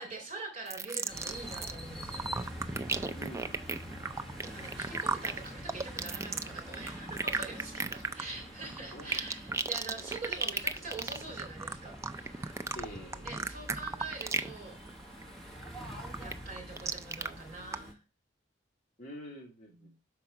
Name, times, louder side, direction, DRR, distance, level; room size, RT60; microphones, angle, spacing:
voice 1, 0.0-2.8 4.4-12.6 13.2-14.7 16.2-18.0 19.7-19.9, right 3 dB, 35° right, 1 dB, 3.6 m, -44 dB
sound 1, 0.7-1.7 2.0-14.6 14.9-15.2 15.6-17.3 17.7-17.8, right 3 dB, 15° right, 0.4 m, -35 dB
sound 2, 1.1-17.9, equal, ahead, 1.6 m, -46 dB
voice 2, 3.1-3.6 8.3-8.4 8.9-9.2 10.0-10.1 12.7-13.5 19.0-20.0, equal, 45° left, -1 dB, 1.5 m, -47 dB
5.9 x 4.6 x 4.6 m, 0.30 s
head